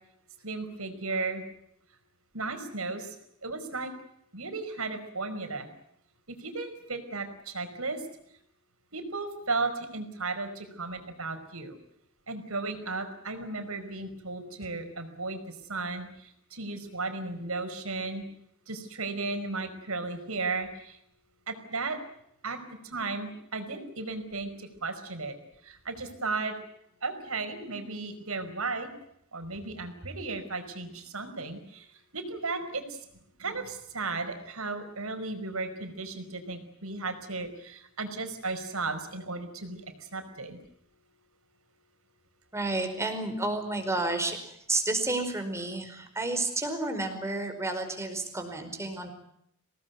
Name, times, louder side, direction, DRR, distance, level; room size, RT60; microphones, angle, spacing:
voice 1, 0.4-1.4 2.3-3.1 3.4-3.9 4.3-5.7 6.3-8.0 8.9-11.8 12.3-15.4 15.7-18.2 18.7-21.0 21.5-22.0 22.4-22.6 22.9-25.4 25.6-26.5 27.0-28.9 29.3-31.8 32.1-33.0 33.4-39.9 40.1-40.6, right 3 dB, 75° right, 7 dB, 5.0 m, -35 dB
voice 2, 42.5-44.4 44.7-49.1, right 2 dB, 15° right, 6 dB, 5.0 m, -31 dB
26.0 x 19.0 x 9.4 m, 0.75 s
head